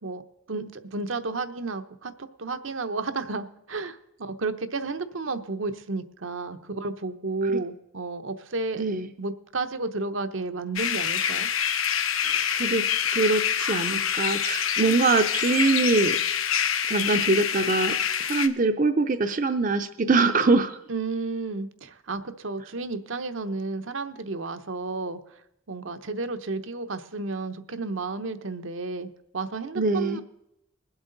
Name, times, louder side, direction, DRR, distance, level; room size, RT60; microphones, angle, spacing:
voice 1, 0.5-8.8 9.2-11.5 20.9-25.2 25.7-30.2, right 3 dB, 70° right, 9 dB, 0.9 m, -32 dB
voice 2, 8.8-9.1 12.2-16.2 16.9-20.8 29.8-30.2, right 3 dB, 40° right, 8 dB, 0.6 m, -24 dB
sound 1, 10.8-18.5, left 8 dB, 85° left, 1.0 m, -26 dB
22.0 x 8.0 x 3.9 m, 0.80 s
head